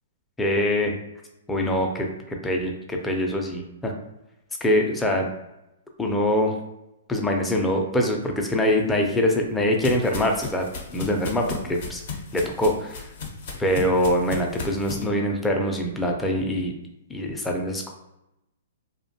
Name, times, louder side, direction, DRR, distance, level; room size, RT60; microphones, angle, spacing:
voice 1, 0.4-1.0 1.5-3.9 4.6-5.3 6.0-6.5 7.1-10.7 10.9-12.0 12.3-13.0 13.6-16.7 17.1-17.9, left 1 dB, 10° left, 1 dB, 0.4 m, -24 dB
sound 1, 8.9-15.0, left 4 dB, 60° left, 0.6 m, -35 dB
2.5 x 2.1 x 2.7 m, 0.90 s
hypercardioid pair, 130°, 0 cm